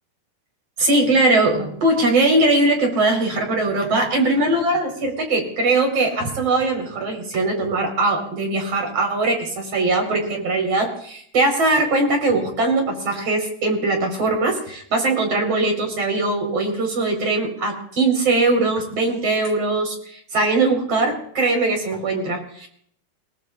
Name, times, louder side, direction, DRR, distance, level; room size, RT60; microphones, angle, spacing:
voice 1, 0.8-22.7, right 2 dB, 35° right, 2 dB, 5.5 m, -21 dB
29.0 x 19.0 x 2.6 m, 0.65 s
omnidirectional pair, 4.7 m